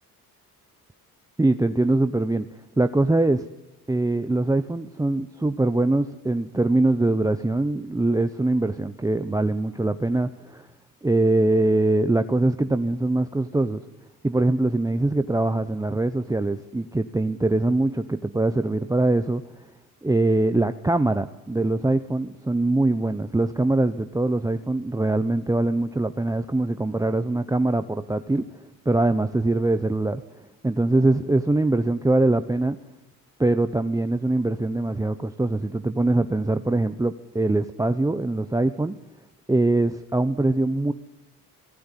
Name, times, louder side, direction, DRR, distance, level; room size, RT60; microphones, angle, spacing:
voice 1, 1.4-2.5 2.8-3.5 3.9-10.7 11.0-13.8 14.2-19.4 20.0-28.4 28.9-30.2 30.6-32.8 33.4-38.9 39.5-40.9, right 2 dB, 10° right, 9 dB, 0.8 m, -23 dB
27.0 x 19.0 x 9.9 m, 1.1 s
cardioid pair, 130°, 35 cm